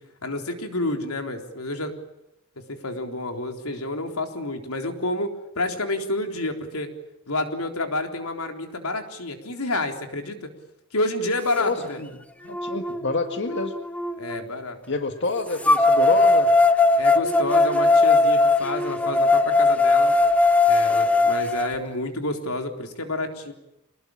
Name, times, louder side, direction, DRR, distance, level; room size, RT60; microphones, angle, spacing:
voice 1, 0.2-1.9 2.6-5.3 5.6-6.9 7.3-10.5 10.9-12.0 14.2-14.8 17.0-20.2 20.6-23.5, left 2 dB, 85° left, 4 dB, 3.9 m, -29 dB
voice 2, 11.6-12.1 12.4-13.7 14.9-16.5, left 2 dB, 55° left, 6 dB, 1.9 m, -27 dB
sound 1, 11.8-11.9 12.5-14.4 15.6-21.7, left 3 dB, 5° left, 1.2 m, -19 dB
26.0 x 20.0 x 8.9 m, 0.86 s
head